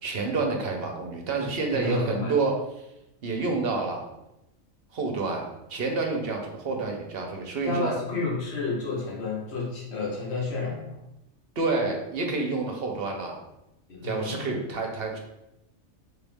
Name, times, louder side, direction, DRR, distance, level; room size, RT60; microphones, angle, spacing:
voice 1, 0.0-2.6 3.2-4.0 4.9-7.9 11.6-13.4 14.0-15.2, right 3 dB, 55° right, 2 dB, 0.8 m, -28 dB
voice 2, 1.7-2.3 7.6-10.9 13.9-14.5, left 3 dB, 50° left, -3 dB, 1.4 m, -30 dB
3.9 x 3.9 x 3.5 m, 0.88 s
omnidirectional pair, 1.4 m